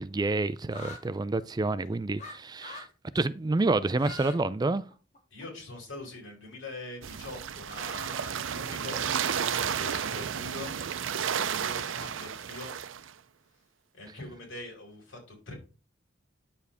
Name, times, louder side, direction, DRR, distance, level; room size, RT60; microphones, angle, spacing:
voice 1, 0.0-2.9 3.1-4.9, right 3 dB, 20° right, 0.4 m, -28 dB
sound 1, 0.7-1.0 2.2-2.3 2.6-2.9 3.8-4.4 4.7-5.4, left 2 dB, 40° left, 2.8 m, -42 dB
voice 2, 5.3-10.7 11.4-12.7 13.9-15.5, left 2 dB, 70° left, 4.7 m, -43 dB
sound 2, 7.0-13.1, right 8 dB, 75° right, 0.6 m, -32 dB
9.8 x 7.2 x 3.4 m
head